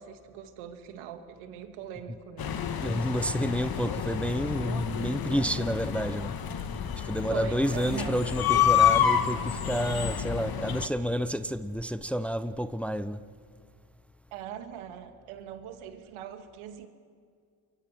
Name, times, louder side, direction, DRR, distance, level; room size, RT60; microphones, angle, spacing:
voice 1, 0.0-2.5 7.3-8.2 14.3-16.9, right 9 dB, 75° right, 2.5 m, -41 dB
sound 1, 2.4-10.9, left 9 dB, 45° left, 1.9 m, -28 dB
voice 2, 2.8-6.3 6.9-13.3, equal, 5° left, 0.8 m, -30 dB
28.0 x 23.5 x 6.2 m
supercardioid pair, 70°, 50 cm